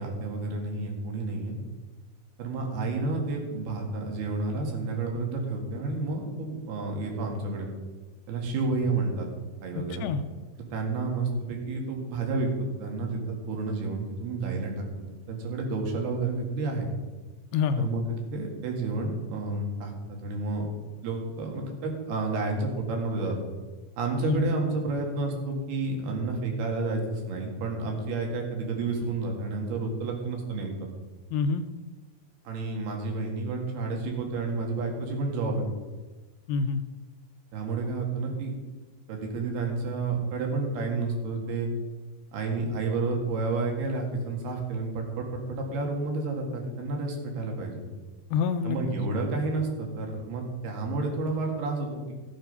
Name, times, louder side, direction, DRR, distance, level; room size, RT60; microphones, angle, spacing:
voice 1, 0.0-1.6 2.4-7.7 8.3-9.3 9.6-10.1 10.7-12.5 12.8-13.2 13.5-16.9 17.8-18.0 18.3-19.9 20.2-20.7 21.0-23.4 24.0-30.7 32.5-35.7 37.5-38.5 39.1-41.7 42.3-47.8 48.6-52.1, right 3 dB, 80° right, 1 dB, 4.0 m, -30 dB
voice 2, 9.7-10.2 17.5-17.9 24.2-24.5 31.3-31.6 36.5-36.8 48.3-48.8, left 5 dB, 80° left, 9 dB, 2.3 m, -27 dB
14.5 x 9.1 x 5.5 m, 1.3 s
omnidirectional pair, 4.5 m